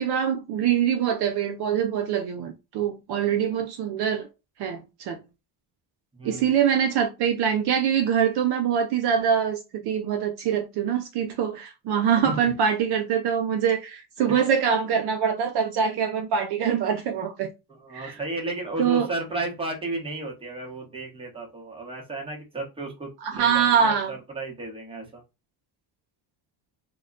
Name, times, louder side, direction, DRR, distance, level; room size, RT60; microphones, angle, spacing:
voice 1, 0.0-4.3 4.6-5.2 6.2-17.5 17.9-18.2 18.8-19.1 23.2-24.1, right 8 dB, 55° right, 0.5 m, -24 dB
voice 2, 6.1-6.5 12.2-12.4 14.3-14.4 17.7-25.2, right 2 dB, 10° right, 0.8 m, -33 dB
2.2 x 2.1 x 3.6 m
cardioid pair, 145°, 46 cm